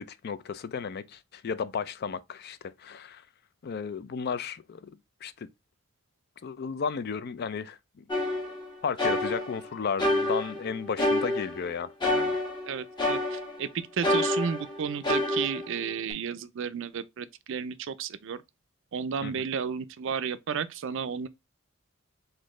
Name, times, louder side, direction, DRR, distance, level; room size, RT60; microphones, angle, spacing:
voice 1, 0.0-3.2 3.6-5.5 6.4-8.0 8.8-12.4 19.2-19.3, left 6 dB, 50° left, 0.4 m, -34 dB
sound 1, 8.1-9.7 10.0-11.7 12.0-13.7 14.0-16.1, left 1 dB, 20° left, 1.2 m, -28 dB
voice 2, 12.7-18.4 18.9-21.3, right 6 dB, 65° right, 0.4 m, -33 dB
4.2 x 2.6 x 3.0 m
head